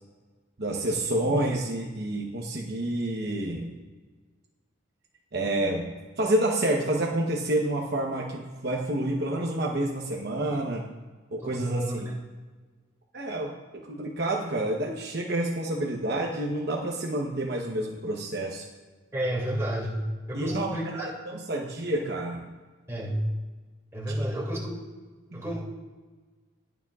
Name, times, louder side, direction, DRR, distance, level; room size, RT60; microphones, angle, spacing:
voice 1, 0.6-3.7 5.3-5.9 6.2-10.8 11.3-12.0 13.1-18.7 20.3-22.5 25.3-25.4, right 1 dB, 55° right, -1 dB, 1.0 m, -29 dB
voice 2, 11.4-12.0 19.1-20.0 20.3-21.1 22.9-23.2 23.9-24.8 25.3-25.6, right 1 dB, 15° right, -4 dB, 2.6 m, -30 dB
20.0 x 7.3 x 2.4 m, 1.3 s
head